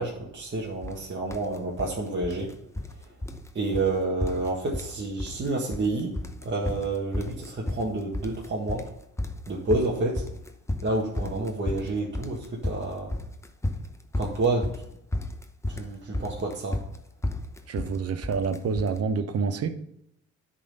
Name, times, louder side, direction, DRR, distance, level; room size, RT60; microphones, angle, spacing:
voice 1, 0.0-2.5 3.5-6.1 6.4-8.9 9.5-10.2 10.8-13.1 14.1-14.7 15.7-16.8, right 2 dB, 40° right, -3 dB, 1.6 m, -29 dB
sound 1, 0.8-1.0 1.3-1.9 2.2-3.0 3.2-3.5 3.7-3.9 4.2-4.9 5.2-5.9 6.2-19.0, left 1 dB, 10° left, 0.8 m, -32 dB
voice 2, 17.7-19.7, right 5 dB, 55° right, 10 dB, 1.0 m, -27 dB
10.0 x 4.2 x 5.4 m, 0.77 s
cardioid pair, 90°, 30 cm